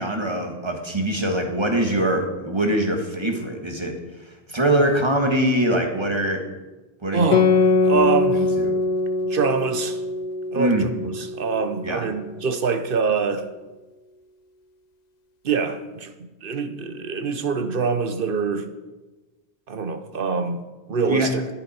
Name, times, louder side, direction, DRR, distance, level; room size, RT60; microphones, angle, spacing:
voice 1, 0.0-3.9 4.5-6.4 7.0-7.3 7.9-8.1 8.3-8.7 10.5-10.9 11.8-12.0 21.1-21.3, right 1 dB, 25° right, 1.5 m, -23 dB
voice 2, 7.1-8.5 9.2-10.0 10.5-13.5 15.4-18.7 19.7-21.4, right 5 dB, 55° right, 1.0 m, -25 dB
Guitar, 7.3-12.3, left 3 dB, 55° left, 0.5 m, -22 dB
12.0 x 10.0 x 4.3 m
omnidirectional pair, 1.2 m